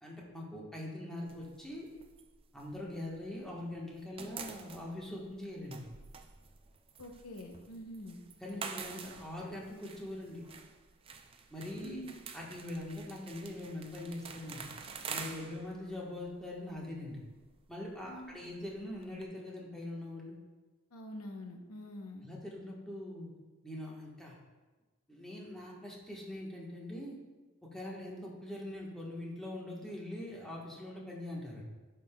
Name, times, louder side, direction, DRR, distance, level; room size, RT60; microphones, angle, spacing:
voice 1, 0.0-1.9 2.5-5.8 8.4-10.4 11.5-12.0 12.3-14.6 15.1-17.2 17.7-20.4 22.2-23.3 23.6-24.4 25.1-27.2 27.7-31.6, left 1 dB, ahead, -4 dB, 1.2 m, -42 dB
sound 1, 1.3-3.5 3.8-19.2, right 5 dB, 25° right, 0.4 m, -48 dB
voice 2, 7.0-8.2 11.8-12.1 18.1-18.5 20.9-22.3, left 1 dB, 80° left, 4 dB, 0.8 m, -46 dB
10.0 x 5.4 x 2.2 m, 1.2 s
head